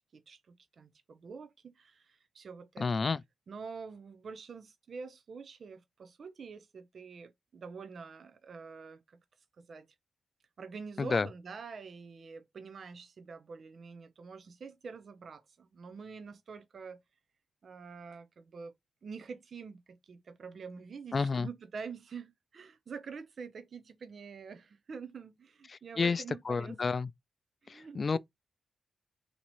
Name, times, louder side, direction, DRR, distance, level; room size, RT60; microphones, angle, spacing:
voice 1, 0.0-2.9 3.5-9.2 9.6-9.9 10.6-17.0 17.6-18.7 19.0-26.8 27.6-28.2, right 5 dB, 65° right, 0.5 m, -46 dB
voice 2, 2.8-3.2 11.0-11.3 21.1-21.5 25.7-27.1 27.7-28.2, left 4 dB, 50° left, 0.3 m, -30 dB
2.9 x 2.9 x 4.1 m
supercardioid pair, 45°, 0 cm